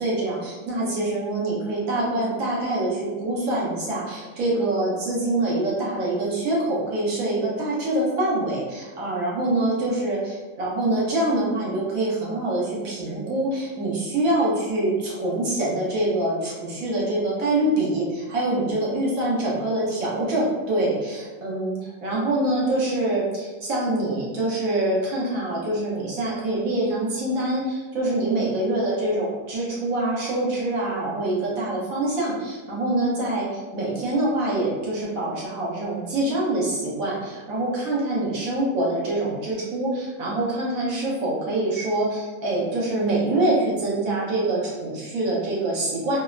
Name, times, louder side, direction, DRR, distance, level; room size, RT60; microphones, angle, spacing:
voice 1, 0.0-21.7 22.0-46.2, right 1 dB, 80° right, -5 dB, 1.3 m, -25 dB
3.3 x 2.1 x 2.4 m, 1.3 s
omnidirectional pair, 1.4 m